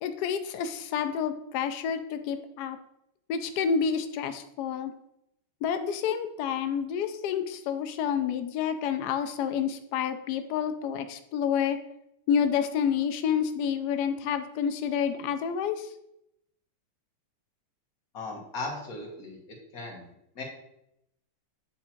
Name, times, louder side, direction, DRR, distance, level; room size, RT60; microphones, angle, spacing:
voice 1, 0.0-2.8 3.3-4.9 5.6-11.8 12.3-15.9, left 7 dB, 90° left, 8 dB, 0.8 m, -29 dB
voice 2, 18.1-19.4 19.7-20.4, left 2 dB, 45° left, -1 dB, 1.9 m, -38 dB
8.7 x 3.5 x 4.4 m, 0.80 s
omnidirectional pair, 2.4 m